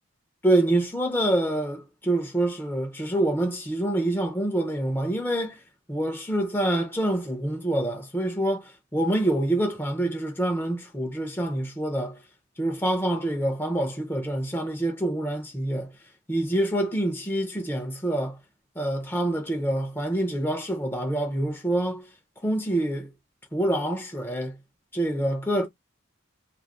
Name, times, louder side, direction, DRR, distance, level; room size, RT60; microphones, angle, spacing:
voice 1, 0.4-5.6 5.9-12.2 12.6-15.9 16.3-18.4 18.8-22.0 22.4-23.1 23.5-24.6 24.9-25.7, right 1 dB, 10° left, 0.7 m, -26 dB
3.2 x 2.5 x 2.3 m
head